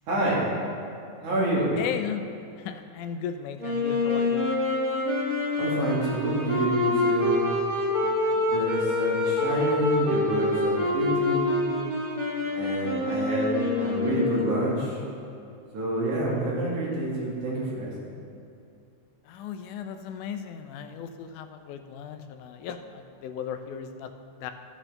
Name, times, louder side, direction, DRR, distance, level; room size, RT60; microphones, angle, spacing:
voice 1, 0.1-0.5 1.2-1.7 5.6-7.5 8.3-11.6 12.5-13.5 13.8-15.0 15.7-17.9, right 1 dB, 75° right, -5 dB, 3.5 m, -28 dB
voice 2, 1.8-4.4 19.3-24.5, left 8 dB, 85° left, 8 dB, 2.1 m, -36 dB
Wind instrument woodwind instrument, 3.6-14.7, left 2 dB, 10° right, 1.4 m, -26 dB
13.0 x 8.7 x 3.3 m, 2.6 s
omnidirectional pair, 3.5 m